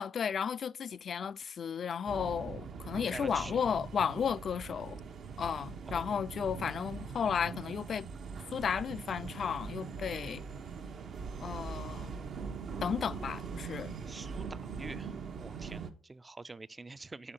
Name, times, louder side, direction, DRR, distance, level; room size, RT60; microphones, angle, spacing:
voice 1, 0.0-5.0 5.4-8.1 8.5-10.4 11.4-12.2 12.8-13.9, left 7 dB, 50° left, 0.3 m, -34 dB
sound 1, 2.1-15.9, right 5 dB, 65° right, 0.9 m, -42 dB
voice 2, 3.1-3.6 5.9-6.3 14.1-17.3, right 3 dB, 20° right, 0.4 m, -47 dB
5.7 x 5.4 x 6.5 m
cardioid pair, 90°, 0 cm